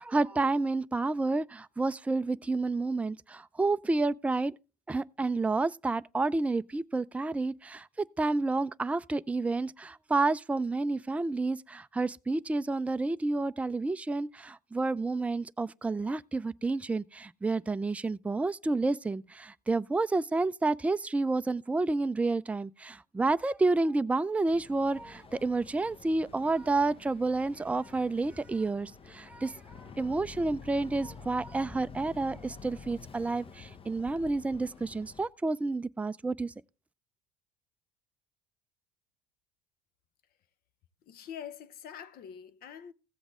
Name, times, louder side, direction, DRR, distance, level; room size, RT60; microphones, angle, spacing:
voice 1, 0.0-4.5 4.9-36.5, right 3 dB, 5° right, 0.4 m, -30 dB
Boat Water vehicle, 24.5-35.3, left 5 dB, 30° left, 0.9 m, -50 dB
voice 2, 41.1-42.9, left 8 dB, 50° left, 0.9 m, -44 dB
15.5 x 7.9 x 3.6 m
hypercardioid pair, 70°, 20 cm